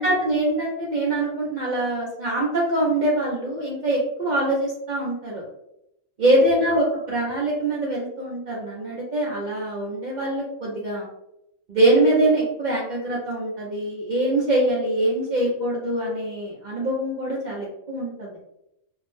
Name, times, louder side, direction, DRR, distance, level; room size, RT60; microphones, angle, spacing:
voice 1, 0.0-5.4 6.2-11.1 11.7-18.3, right 1 dB, 60° right, -5 dB, 0.4 m, -23 dB
2.6 x 2.0 x 3.0 m, 0.84 s
omnidirectional pair, 1.4 m